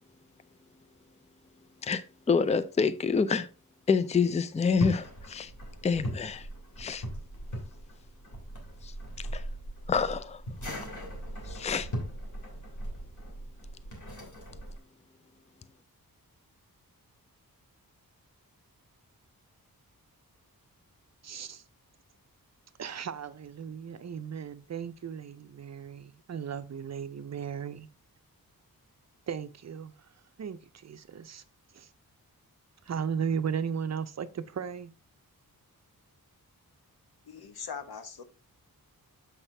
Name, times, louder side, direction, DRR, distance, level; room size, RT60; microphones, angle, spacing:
voice 1, 1.8-3.5 3.9-5.5 5.8-6.5 6.8-7.0 8.8-9.5 9.9-10.4 11.4-11.9, left 5 dB, 20° left, 0.4 m, -28 dB
sound 1, 4.6-14.8, equal, 55° left, 3.1 m, -39 dB
voice 2, 21.2-21.6 22.8-27.9 29.3-29.9 30.4-31.4 31.7-31.9 32.9-34.9, right 7 dB, 45° right, 0.5 m, -36 dB
voice 3, 37.3-38.2, left 6 dB, 90° left, 1.2 m, -41 dB
7.1 x 5.7 x 3.3 m
wide cardioid pair, 170°, 36 cm